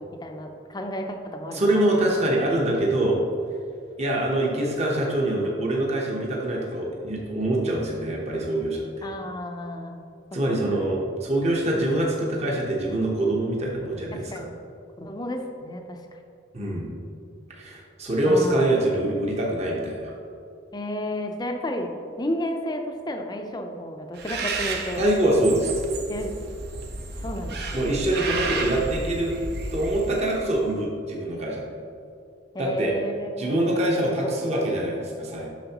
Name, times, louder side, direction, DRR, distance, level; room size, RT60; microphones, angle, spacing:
voice 1, 0.1-1.9 9.0-10.0 10.5-10.6 14.1-14.5 15.0-16.0 18.3-19.0 20.7-21.9 22.2-25.0 26.1-26.3 27.2-28.0 32.5-33.6 33.9-34.3, left 1 dB, 20° left, 4 dB, 0.6 m, -32 dB
voice 2, 1.5-3.2 4.0-9.1 10.3-14.5 16.5-16.9 17.5-20.1 25.0-25.7 27.7-29.3 29.7-31.7 32.6-32.9 33.4-35.5, right 1 dB, 35° right, -2 dB, 1.0 m, -24 dB
Bird, 24.2-30.6, right 3 dB, 60° right, 0.8 m, -32 dB
9.2 x 6.2 x 2.9 m, 2.5 s
head